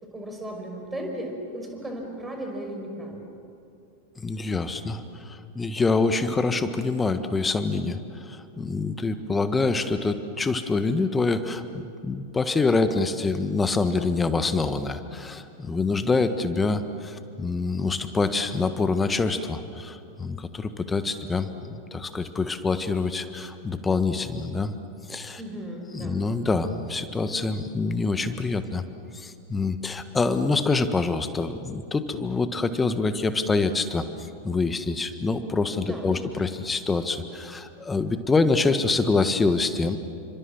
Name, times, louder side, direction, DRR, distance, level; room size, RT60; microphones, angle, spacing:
voice 1, 0.0-3.2 25.4-26.2 35.8-36.2, right 1 dB, 10° right, 2 dB, 5.5 m, -35 dB
voice 2, 4.2-8.0 8.3-11.6 12.0-24.7 25.1-25.4 25.9-28.8 29.1-34.0 34.4-40.0, left 3 dB, 15° left, 10 dB, 1.5 m, -26 dB
29.5 x 25.5 x 7.4 m, 2.7 s
figure-of-eight pair, 90°, 0 cm